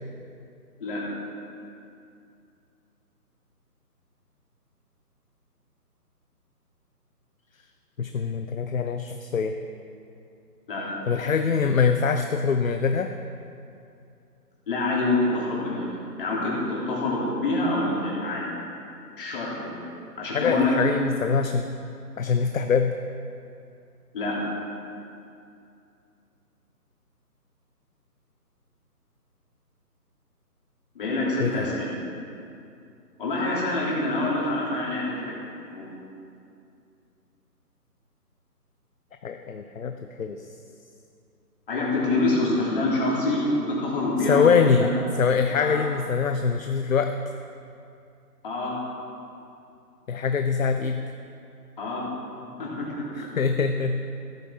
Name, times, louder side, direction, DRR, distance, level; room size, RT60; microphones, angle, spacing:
voice 1, 8.0-9.6 11.1-13.1 20.3-21.7 22.2-22.9 31.4-31.7 39.2-39.9 40.2-40.5 44.2-44.9 45.1-47.3 50.1-51.0 53.1-54.0, left 5 dB, 55° left, 6 dB, 0.7 m, -24 dB
voice 2, 14.7-18.5 19.2-19.8 20.2-20.7 24.1-24.4 30.9-31.9 33.2-35.4 35.7-35.9 41.7-44.9 45.6-45.8 48.4-48.7 51.8-52.0 52.6-53.3, left 2 dB, 35° left, -5 dB, 3.3 m, -26 dB
15.0 x 13.0 x 3.7 m, 2.5 s
figure-of-eight pair, 150°, 48 cm